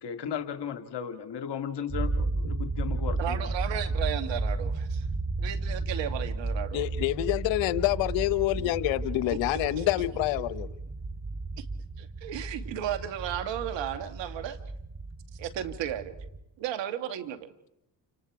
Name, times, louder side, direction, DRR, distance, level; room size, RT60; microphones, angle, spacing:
voice 1, 0.0-3.5, left 8 dB, 65° left, 7 dB, 2.0 m, -35 dB
sound 1, 1.9-16.4, right 3 dB, 25° right, 3.2 m, -33 dB
voice 2, 3.2-5.1 5.4-6.8 8.6-8.7 9.3-9.8 10.4-10.5 11.6-11.7 12.0-14.6 15.3-16.1 16.6-17.5, right 10 dB, 80° right, 9 dB, 2.1 m, -34 dB
voice 3, 6.7-10.7, left 16 dB, 90° left, 16 dB, 1.0 m, -27 dB
29.5 x 27.5 x 4.9 m, 0.79 s
supercardioid pair, 55°, 44 cm